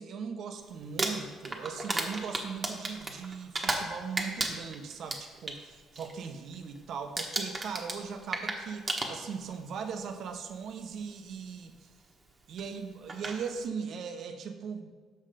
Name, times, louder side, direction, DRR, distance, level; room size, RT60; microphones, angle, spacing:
voice 1, 0.0-11.9 12.5-14.9, right 6 dB, 65° right, 7 dB, 0.8 m, -39 dB
Crumpling crinkling, 0.8-3.9 4.2-5.6 5.9-6.3 6.5-6.8 7.2-9.5 10.5-10.6 12.6-12.7 13.1-13.4, right 2 dB, 30° right, 1.1 m, -33 dB
6.3 x 5.7 x 5.0 m, 1.5 s
cardioid pair, 85°, 0 cm